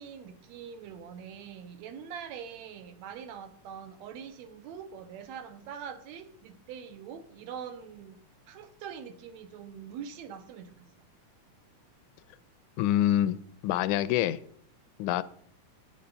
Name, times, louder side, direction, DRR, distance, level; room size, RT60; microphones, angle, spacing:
voice 1, 0.0-8.2 8.5-10.9, right 7 dB, 75° right, 2.0 m, -43 dB
voice 2, 12.8-13.4 13.6-14.4 15.0-15.2, left 12 dB, 85° left, 2.0 m, -25 dB
9.0 x 8.7 x 5.4 m
omnidirectional pair, 3.4 m